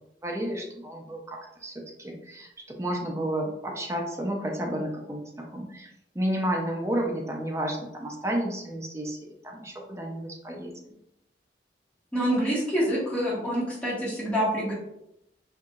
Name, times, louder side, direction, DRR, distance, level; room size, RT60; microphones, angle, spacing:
voice 1, 0.2-5.9 6.1-10.7, right 1 dB, 15° right, 0 dB, 0.5 m, -31 dB
voice 2, 12.1-14.7, equal, 10° left, -8 dB, 1.3 m, -26 dB
4.5 x 2.6 x 2.4 m, 0.81 s
head